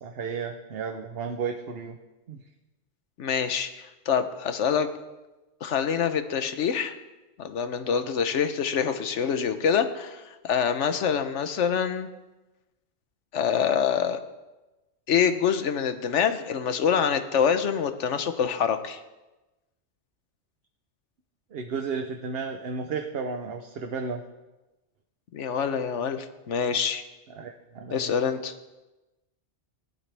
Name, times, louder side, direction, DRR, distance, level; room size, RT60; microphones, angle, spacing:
voice 1, 0.0-2.0 2.3-2.4 21.5-24.2 27.4-28.1, right 5 dB, 60° right, 4 dB, 1.0 m, -33 dB
voice 2, 3.2-4.9 5.6-6.9 7.4-12.1 13.3-14.2 15.1-19.0 25.3-27.0 27.9-28.5, left 7 dB, 90° left, 9 dB, 1.2 m, -26 dB
17.5 x 11.5 x 3.4 m, 1.1 s
omnidirectional pair, 1.2 m